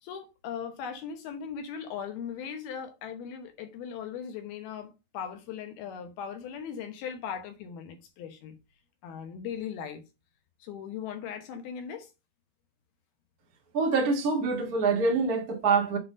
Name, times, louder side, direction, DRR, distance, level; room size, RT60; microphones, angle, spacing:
voice 1, 0.0-8.6 9.0-10.1 10.6-12.1, left 7 dB, 70° left, 2.7 m, -38 dB
voice 2, 13.7-16.0, right 4 dB, 60° right, 0.9 m, -25 dB
7.6 x 3.9 x 5.1 m
omnidirectional pair, 4.9 m